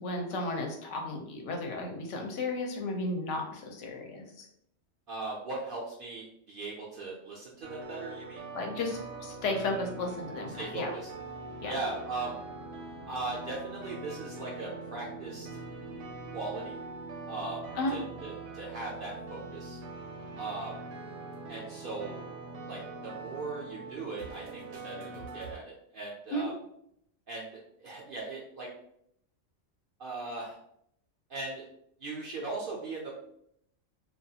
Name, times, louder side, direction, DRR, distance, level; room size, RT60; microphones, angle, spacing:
voice 1, 0.0-4.5 8.5-10.9 11.6-11.7 17.8-17.9 26.3-26.5, left 2 dB, 70° left, 2 dB, 0.9 m, -34 dB
voice 2, 5.1-8.5 10.6-11.1 11.6-12.4 13.1-15.5 16.3-16.8 17.3-19.8 20.4-20.8 21.5-22.2 22.7-26.5 27.3-28.7 30.0-30.6 31.3-31.6 32.0-33.1, right 3 dB, 60° right, -3 dB, 0.6 m, -39 dB
sound 1, 7.6-25.6, right 3 dB, 80° right, 0.9 m, -43 dB
2.3 x 2.3 x 2.7 m, 0.72 s
omnidirectional pair, 1.3 m